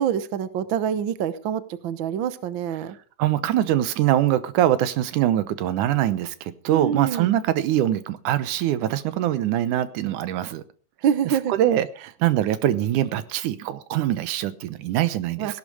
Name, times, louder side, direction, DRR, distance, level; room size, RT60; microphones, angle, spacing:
voice 1, 0.0-3.0 6.7-7.3 11.0-11.5 15.4-15.6, right 9 dB, 65° right, 14 dB, 1.2 m, -26 dB
voice 2, 3.2-10.6 11.5-15.6, right 12 dB, 85° right, 15 dB, 2.5 m, -23 dB
16.5 x 11.5 x 4.8 m, 0.40 s
omnidirectional pair, 3.5 m